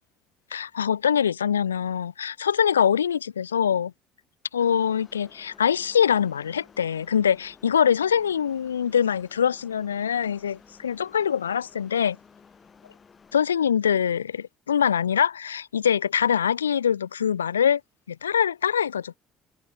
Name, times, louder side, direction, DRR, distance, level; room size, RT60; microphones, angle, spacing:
voice 1, 0.5-3.9 4.5-12.2 13.3-17.8 18.1-19.2, left 8 dB, 90° left, 0.4 m, -23 dB
sound 1, 4.6-13.5, left 5 dB, 35° left, 8.0 m, -54 dB
hypercardioid pair, 55°, 0 cm